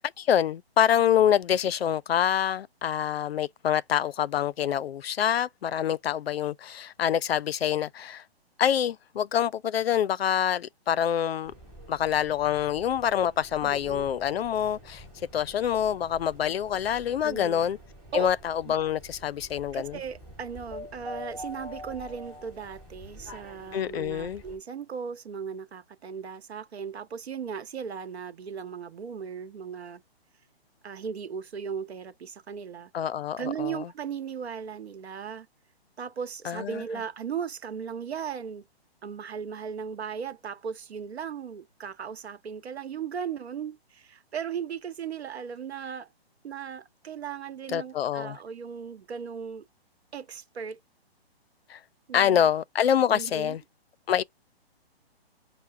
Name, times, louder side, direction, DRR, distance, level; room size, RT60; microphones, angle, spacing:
voice 1, 0.2-8.2 8.6-11.5 11.9-15.0 15.3-17.8 18.1-20.0 23.7-24.4 32.9-33.9 36.4-36.8 47.7-48.4 51.7-51.8 52.1-53.6 54.1-54.2, left 9 dB, 70° left, 0.5 m, -26 dB
sound 1, 11.4-24.6, left 1 dB, ahead, 2.6 m, -46 dB
voice 2, 13.6-14.1 17.2-17.7 18.1-18.3 18.6-18.8 19.7-30.0 30.8-32.9 33.4-35.5 36.0-38.6 39.0-46.1 46.4-49.6 50.1-50.8 52.1-52.5 53.1-53.6, right 7 dB, 80° right, 0.9 m, -37 dB
5.6 x 2.1 x 3.3 m
hypercardioid pair, 175°, 32 cm